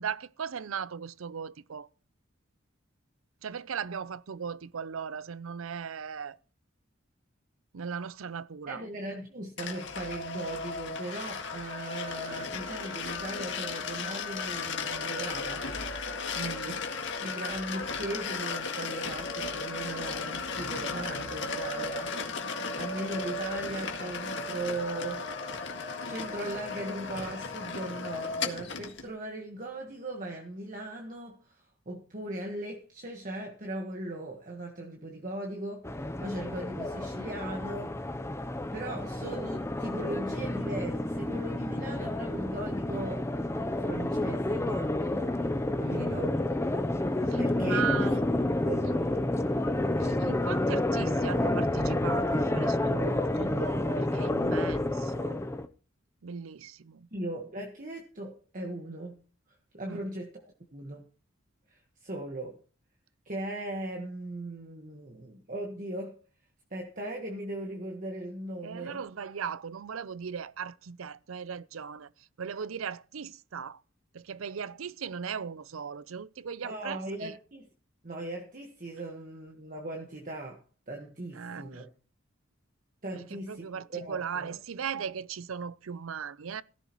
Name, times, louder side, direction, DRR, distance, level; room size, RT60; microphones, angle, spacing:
voice 1, 0.0-1.9 3.4-6.4 7.7-8.9 16.3-16.9 45.8-46.3 47.3-48.2 48.8-49.0 50.0-55.4 56.2-57.1 59.9-60.1 68.6-72.1 72.4-73.8 74.1-77.4 81.3-81.9 83.1-86.6, right 7 dB, 85° right, 0.6 m, -38 dB
voice 2, 8.7-15.7 16.6-16.8 17.2-22.2 22.7-25.3 26.1-38.0 38.7-43.3 43.6-45.4 45.8-46.3 47.0-48.1 48.6-48.9 57.1-59.2 59.7-61.0 61.7-62.6 63.2-66.2 66.7-69.0 76.6-77.7 78.0-81.9 83.0-84.6, right 1 dB, 40° right, 1.5 m, -38 dB
sound 1, 9.6-29.1, left 4 dB, 60° left, 1.9 m, -35 dB
sound 2, 35.8-55.7, left 1 dB, 15° left, 0.7 m, -29 dB
16.0 x 14.0 x 3.1 m
head